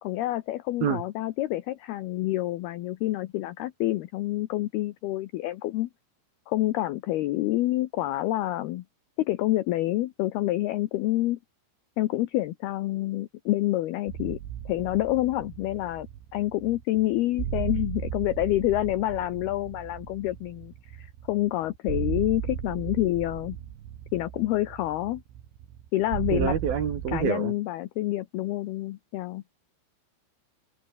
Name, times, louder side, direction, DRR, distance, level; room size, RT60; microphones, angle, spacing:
voice 1, 0.0-5.9 6.5-8.8 9.2-11.4 12.0-14.4 14.7-16.1 16.3-23.6 24.1-25.2 25.9-26.6 27.1-29.4, left 16 dB, 85° left, 2.2 m, -28 dB
sound 1, 14.1-27.3, right 11 dB, 75° right, 4.8 m, -36 dB
voice 2, 26.3-27.5, right 7 dB, 55° right, 4.2 m, -27 dB
omnidirectional pair, 5.6 m